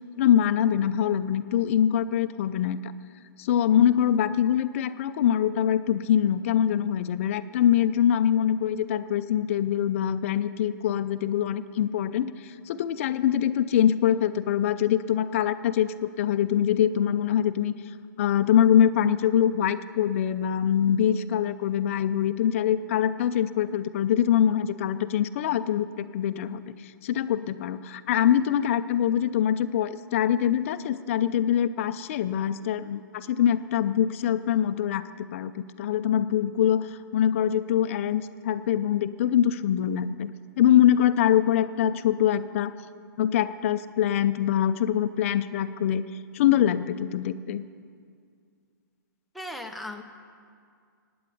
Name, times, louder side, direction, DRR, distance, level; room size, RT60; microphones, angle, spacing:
voice 1, 0.2-2.9 3.4-17.7 18.2-26.6 27.0-40.3 40.6-42.7 43.2-46.0 46.3-47.6, left 10 dB, 40° left, 11 dB, 0.6 m, -24 dB
voice 2, 49.3-50.0, left 1 dB, ahead, 6 dB, 0.7 m, -37 dB
16.5 x 9.5 x 8.4 m, 2.2 s
hypercardioid pair, 160°, 11 cm